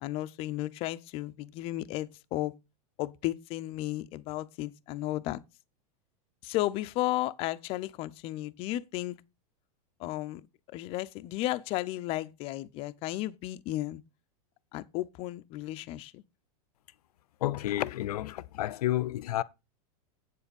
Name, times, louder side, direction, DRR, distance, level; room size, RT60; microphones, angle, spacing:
voice 1, 0.0-2.5 3.0-5.4 6.4-9.2 10.0-10.4 10.7-14.0 14.7-16.2, left 16 dB, 30° left, 0.5 m, -34 dB
voice 2, 17.4-19.4, left 14 dB, 85° left, 0.7 m, -30 dB
8.2 x 7.2 x 5.2 m
supercardioid pair, 160°, 19 cm